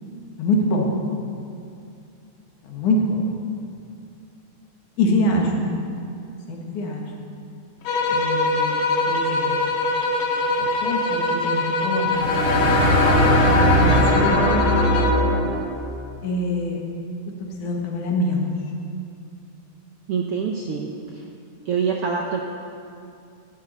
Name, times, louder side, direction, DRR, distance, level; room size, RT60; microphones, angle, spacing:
voice 1, 0.4-0.9 2.6-3.2 5.0-5.5 6.5-7.1 8.1-9.7 10.6-12.4 13.6-13.9 14.1-14.7 16.2-16.8 17.6-18.5, left 1 dB, 75° left, -1 dB, 3.1 m, -24 dB
sound 1, 7.9-15.3, left 2 dB, 90° left, 2.8 m, -23 dB
sound 2, 12.1-15.8, left 1 dB, 55° left, 2.6 m, -19 dB
voice 2, 20.1-21.2 21.6-22.4, right 6 dB, 75° right, 1 dB, 1.3 m, -25 dB
13.0 x 7.4 x 9.4 m, 2.5 s
omnidirectional pair, 3.6 m